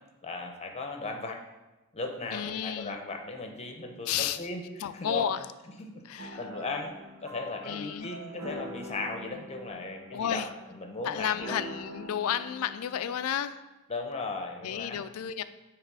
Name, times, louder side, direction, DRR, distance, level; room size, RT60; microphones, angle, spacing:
voice 1, 0.2-1.4 1.9-5.3 5.8-6.9 7.2-10.4 10.7-11.6 13.9-15.1, left 3 dB, 30° left, 4 dB, 0.8 m, -37 dB
voice 2, 2.3-3.0 4.1-4.5 4.8-5.5 6.0-6.4 7.6-8.1 10.1-10.5 11.0-13.6 14.6-15.4, left 9 dB, 70° left, 12 dB, 0.4 m, -32 dB
sound 1, 6.2-13.3, equal, 70° right, 0.9 m, -44 dB
9.3 x 3.2 x 4.7 m, 1.1 s
head